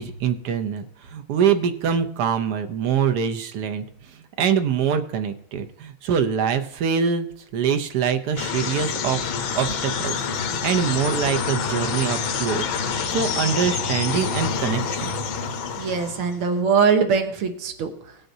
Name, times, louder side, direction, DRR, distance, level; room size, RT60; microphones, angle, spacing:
voice 1, 0.0-7.3 7.5-9.2 9.5-10.2 10.4-12.6 13.1-15.2, right 7 dB, 65° right, 9 dB, 1.1 m, -24 dB
sound 1, 8.4-16.5, left 6 dB, 75° left, 1.7 m, -27 dB
voice 2, 15.8-17.9, right 6 dB, 85° right, 5 dB, 2.0 m, -21 dB
18.0 x 7.8 x 2.7 m, 0.72 s
omnidirectional pair, 2.3 m